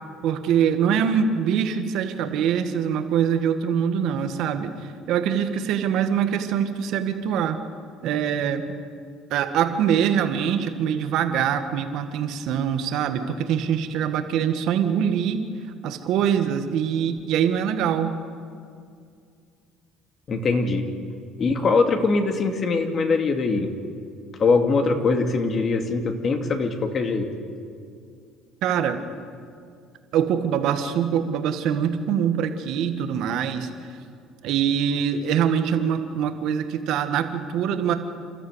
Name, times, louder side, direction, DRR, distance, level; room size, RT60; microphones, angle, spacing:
voice 1, 0.2-4.7 5.1-7.6 8.0-8.6 9.3-15.4 15.8-18.1 28.6-29.0 30.1-33.7 34.4-37.9, right 8 dB, 70° right, 7 dB, 1.9 m, -23 dB
voice 2, 20.3-20.9 21.4-23.7 24.4-27.3, left 4 dB, 40° left, 5 dB, 2.5 m, -22 dB
29.0 x 13.5 x 8.2 m, 2.3 s
cardioid pair, 105°, 0 cm